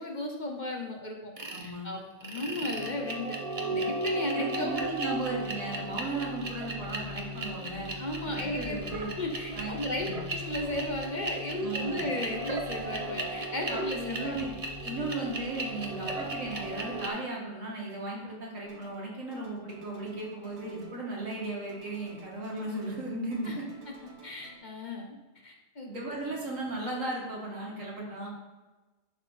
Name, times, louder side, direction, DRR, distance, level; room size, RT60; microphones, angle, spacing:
voice 1, 0.0-1.3 1.6-3.4 3.7-4.9 8.0-8.8 9.2-14.3 23.4-23.5 24.2-25.2 25.4-25.9, left 1 dB, 40° left, 1 dB, 0.9 m, -35 dB
sound 1, 1.4-1.7 2.2-17.1, right 2 dB, 30° right, 0.8 m, -35 dB
voice 2, 1.5-1.9 4.3-7.9 8.2-9.1 9.5-10.2 11.6-12.1 13.7-14.5 14.8-23.8 25.9-28.3, right 2 dB, 85° right, -3 dB, 2.3 m, -36 dB
sound 2, 18.7-19.1 19.3-21.0 21.3-23.0 23.3-24.6, right 3 dB, 60° right, 1.4 m, -54 dB
11.0 x 4.3 x 4.1 m, 1.2 s
omnidirectional pair, 1.3 m